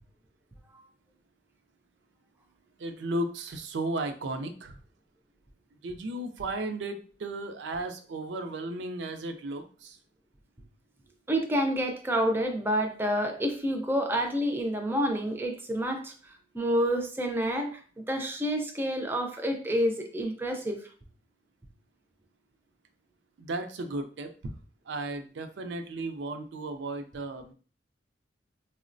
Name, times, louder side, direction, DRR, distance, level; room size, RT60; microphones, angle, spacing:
voice 1, 2.8-4.8 5.8-10.0 23.4-24.5 24.9-27.5, right 2 dB, 80° right, 7 dB, 0.4 m, -35 dB
voice 2, 11.3-20.8, equal, 10° right, 3 dB, 0.4 m, -28 dB
3.7 x 2.0 x 2.5 m, 0.40 s
head